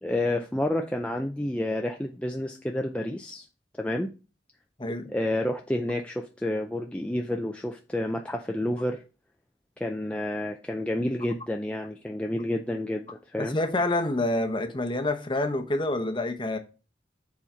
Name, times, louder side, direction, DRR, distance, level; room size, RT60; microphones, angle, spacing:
voice 1, 0.0-3.4 3.8-4.1 5.1-9.0 9.8-13.6, left 1 dB, 5° left, 0.4 m, -29 dB
voice 2, 4.8-5.1 13.4-16.6, left 2 dB, 25° left, 0.8 m, -27 dB
7.2 x 4.2 x 4.4 m
head